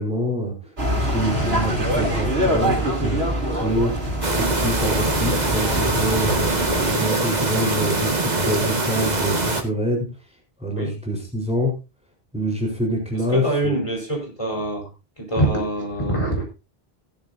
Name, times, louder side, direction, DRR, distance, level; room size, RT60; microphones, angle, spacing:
voice 1, 0.0-6.4 6.8-10.1 10.6-11.7 12.3-13.8, equal, 5° right, 0 dB, 3.9 m, -26 dB
sound 1, 0.8-6.9, equal, 80° right, 3.1 m, -24 dB
sound 2, 1.2-3.4 4.0-4.4 4.7-6.5, equal, 50° left, 7.4 m, -34 dB
sound 3, 4.2-9.6, right 2 dB, 45° right, 1.9 m, -23 dB
voice 2, 13.3-14.9 15.2-16.4, right 1 dB, 30° left, 0 dB, 4.4 m, -24 dB
15.5 x 12.0 x 2.6 m, 0.28 s
omnidirectional pair, 1.0 m